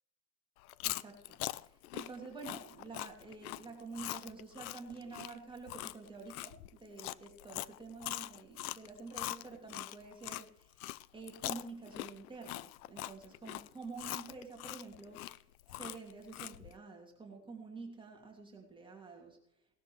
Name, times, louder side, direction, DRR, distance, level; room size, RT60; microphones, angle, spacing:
Chewing mastication, 0.6-10.4 10.8-16.7, left 17 dB, 70° left, 0.6 m, -42 dB
voice 1, 0.8-10.8 11.1-19.4, right 4 dB, 10° right, 0 dB, 2.5 m, -49 dB
18.0 x 12.5 x 3.2 m, 0.74 s
supercardioid pair, 130°, 46 cm